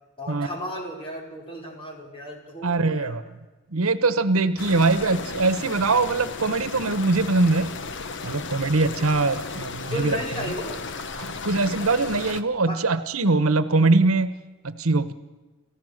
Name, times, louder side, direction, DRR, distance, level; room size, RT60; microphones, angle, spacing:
voice 1, 0.2-3.1 5.0-5.2 9.0-9.3 9.9-10.8 12.7-12.8, equal, 25° left, 0 dB, 4.9 m, -34 dB
voice 2, 2.6-3.2 3.7-7.8 8.2-10.2 11.2-15.1, right 3 dB, 85° right, 13 dB, 1.1 m, -22 dB
sound 1, 4.6-12.4, left 4 dB, 60° left, 1.2 m, -35 dB
29.5 x 14.5 x 6.6 m, 1.2 s
head